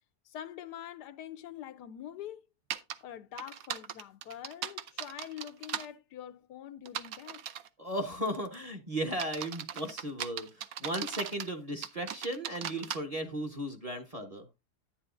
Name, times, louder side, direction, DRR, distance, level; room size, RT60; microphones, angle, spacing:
voice 1, 0.2-2.5 3.0-7.4, left 10 dB, 85° left, 1.3 m, -45 dB
sound 1, 2.7-3.0 3.4-5.9 6.9-7.7 8.3-8.6 9.1-11.5 11.8-13.0, right 9 dB, 65° right, 1.1 m, -38 dB
voice 2, 7.8-14.4, right 1 dB, 25° right, 1.0 m, -36 dB
10.5 x 9.6 x 2.5 m
omnidirectional pair, 1.7 m